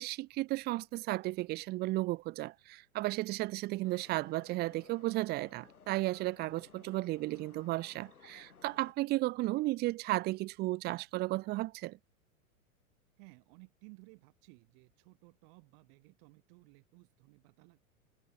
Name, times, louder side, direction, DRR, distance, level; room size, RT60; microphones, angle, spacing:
voice 1, 0.0-12.0, right 19 dB, 25° right, 0.5 m, -34 dB
sound 1, 3.8-8.9, left 6 dB, 90° left, 2.1 m, -60 dB
voice 2, 13.2-17.8, right 40 dB or more, 45° right, 3.1 m, -58 dB
hypercardioid pair, 100°, 43 cm